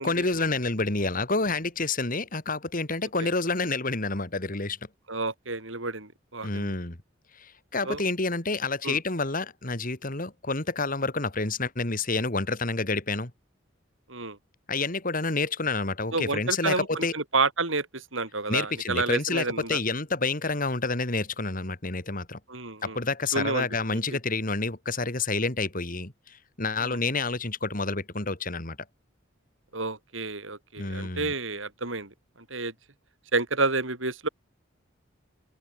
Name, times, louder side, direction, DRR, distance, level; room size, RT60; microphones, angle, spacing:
voice 1, 0.0-4.8 6.4-7.0 7.3-13.3 14.7-17.1 18.5-22.4 22.8-28.8 30.8-31.3, left 3 dB, 45° left, 3.0 m, -29 dB
voice 2, 5.1-6.7 7.8-8.0 8.8-9.0 14.1-14.4 16.1-19.8 22.5-23.0 23.3-24.2 26.8-27.0 29.7-32.7 33.3-34.3, right 3 dB, 75° right, 5.4 m, -30 dB
head